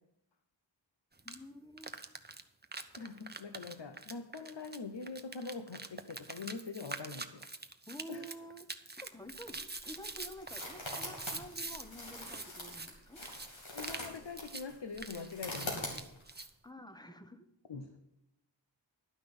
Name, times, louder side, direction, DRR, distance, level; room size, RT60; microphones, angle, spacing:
voice 1, 1.2-2.0 7.9-8.7 9.0-13.2 16.6-17.5, equal, 10° left, 8 dB, 1.0 m, -50 dB
sound 1, 1.2-1.4 1.8-11.8 12.1-12.9 13.2-13.5 13.8-14.1 14.4-14.6 14.9-16.5, right 3 dB, 20° right, 0.8 m, -44 dB
voice 2, 3.0-7.5 8.1-8.3 13.7-15.9 17.7-18.0, left 4 dB, 65° left, 7 dB, 0.9 m, -43 dB
sound 2, 9.2-16.4, left 1 dB, 85° left, 2.8 m, -45 dB
11.0 x 5.9 x 8.7 m, 0.83 s
wide cardioid pair, 40°, 45 cm